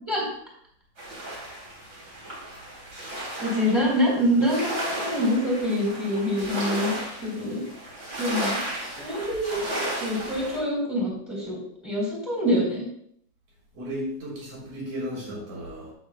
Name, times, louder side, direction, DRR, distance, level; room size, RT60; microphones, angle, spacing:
sound 1, 1.0-10.6, right 1 dB, 35° right, 3.5 m, -34 dB
voice 1, 3.4-6.9 7.2-7.6 8.2-8.6 9.0-11.6 11.8-12.8, equal, 10° left, -4 dB, 3.6 m, -25 dB
voice 2, 13.7-15.9, equal, 85° right, -4 dB, 5.1 m, -34 dB
14.5 x 8.1 x 2.3 m, 0.69 s
omnidirectional pair, 3.4 m